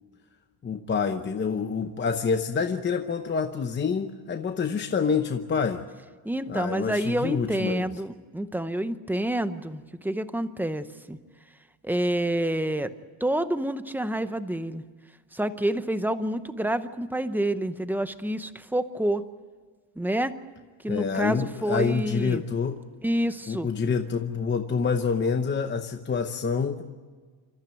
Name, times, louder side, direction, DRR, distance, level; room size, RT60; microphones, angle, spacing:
voice 1, 0.6-5.8 6.5-7.9 20.9-22.8 23.5-26.8, left 5 dB, 25° left, 7 dB, 0.8 m, -27 dB
voice 2, 6.2-11.2 11.8-12.9 13.2-14.8 15.3-19.2 20.0-20.3 20.8-22.4 23.0-23.7, right 1 dB, 5° right, 11 dB, 0.7 m, -28 dB
27.5 x 14.0 x 9.1 m, 1.5 s
cardioid pair, 170°, 45 cm